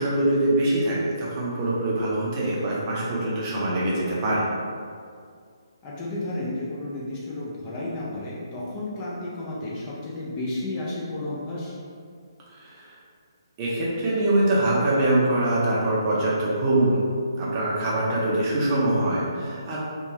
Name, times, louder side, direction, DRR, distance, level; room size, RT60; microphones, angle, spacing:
voice 1, 0.0-4.5 12.5-12.9 13.6-17.1 17.3-19.8, right 1 dB, 25° right, -6 dB, 0.6 m, -23 dB
voice 2, 5.8-11.7, left 2 dB, 25° left, -6 dB, 0.5 m, -32 dB
2.9 x 2.2 x 2.8 m, 2.2 s
hypercardioid pair, 155°, 2 cm